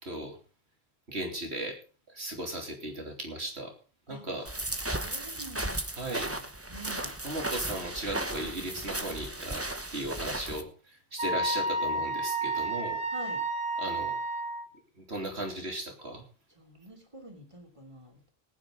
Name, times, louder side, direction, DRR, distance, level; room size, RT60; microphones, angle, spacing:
voice 1, 0.0-0.4 1.1-1.8 2.1-3.7 4.1-4.5 6.0-6.3 7.2-9.7 9.9-13.0 13.8-14.2 14.9-16.2, right 1 dB, 85° right, 2 dB, 3.4 m, -36 dB
sound 1, 4.5-10.6, right 1 dB, 15° right, 1.0 m, -35 dB
voice 2, 4.9-7.1 13.1-13.4 16.6-18.3, right 1 dB, 30° right, 1 dB, 3.2 m, -47 dB
Wind instrument woodwind instrument, 11.2-14.7, right 2 dB, 55° right, 1.7 m, -31 dB
20.0 x 9.5 x 3.8 m, 0.36 s
omnidirectional pair, 1.1 m